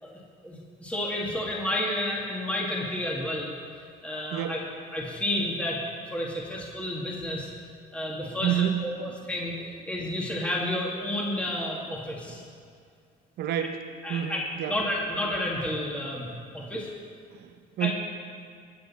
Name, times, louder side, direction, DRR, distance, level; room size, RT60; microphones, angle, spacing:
voice 1, 0.0-3.5 4.0-4.6 4.9-7.5 7.9-12.4 14.0-14.4 14.7-16.9 17.8-17.9, left 1 dB, 5° left, -3 dB, 2.0 m, -31 dB
voice 2, 4.3-4.6 8.3-8.8 12.3-12.4 13.4-13.8 14.1-14.8 16.6-16.7 17.3-17.9, right 10 dB, 70° right, 8 dB, 0.9 m, -29 dB
21.0 x 7.9 x 4.2 m, 2.3 s
cardioid pair, 110°, 17 cm